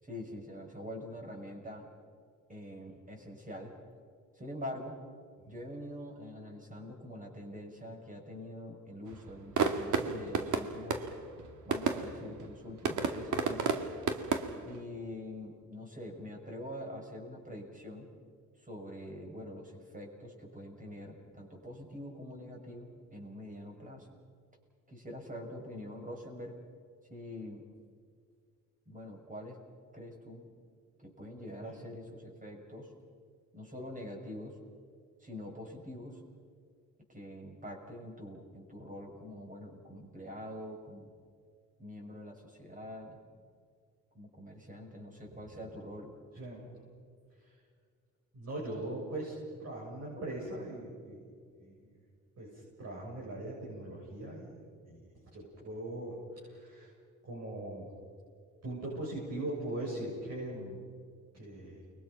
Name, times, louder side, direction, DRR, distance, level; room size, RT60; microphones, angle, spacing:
voice 1, 0.0-1.9 2.5-3.7 4.3-5.0 5.5-11.1 11.6-13.8 14.6-18.1 18.6-24.1 24.9-26.5 27.1-27.6 28.9-29.6 29.9-30.5 31.0-32.9 33.5-34.6 35.2-36.2 37.1-41.1 41.8-43.2 44.1-46.1 50.2-50.3, left 1 dB, 25° right, 1 dB, 6.4 m, -45 dB
sound 1, 9.1-14.8, right 6 dB, 75° right, 2.2 m, -33 dB
voice 2, 46.3-46.7 47.4-47.5 48.3-51.3 51.6-51.9 52.4-54.6 54.8-55.0 55.3-56.9 57.3-57.9 58.6-60.8 61.3-61.8, right 1 dB, 55° right, -4 dB, 8.0 m, -40 dB
30.0 x 22.5 x 5.9 m, 2.1 s
cardioid pair, 90°, 30 cm